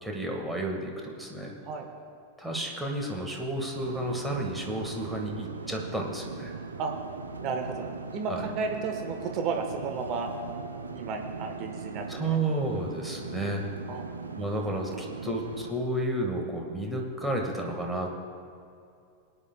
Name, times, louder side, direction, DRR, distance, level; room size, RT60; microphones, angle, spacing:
voice 1, 0.0-1.6 2.4-6.5 8.3-8.4 12.1-13.6 14.4-18.1, right 1 dB, 5° right, 0 dB, 1.7 m, -31 dB
sound 1, 3.7-15.7, right 4 dB, 75° right, 0.7 m, -40 dB
voice 2, 7.4-10.3 10.9-12.1 13.9-14.0, right 5 dB, 40° right, 3 dB, 1.1 m, -33 dB
20.5 x 10.0 x 2.3 m, 2.5 s
figure-of-eight pair, 90°, 0 cm